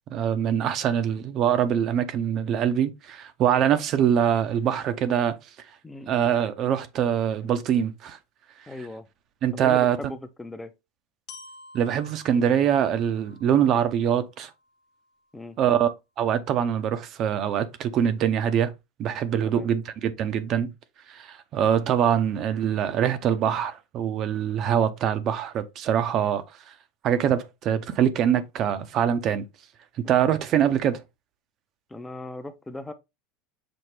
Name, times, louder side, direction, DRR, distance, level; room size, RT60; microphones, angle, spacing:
voice 1, 0.1-5.4 6.1-8.2 9.4-10.0 11.7-14.5 15.6-18.7 19.0-20.7 21.1-26.7 27.0-29.5 30.1-31.0, right 9 dB, 45° right, 0.6 m, -24 dB
voice 2, 5.8-6.2 8.7-9.1 9.5-10.7 15.3-15.6 19.4-19.7 30.0-30.2 31.9-32.9, left 2 dB, 10° left, 0.5 m, -38 dB
Glockenspiel, 11.3-15.2, left 3 dB, 50° left, 1.0 m, -50 dB
5.9 x 2.1 x 3.3 m
supercardioid pair, 105°, 0 cm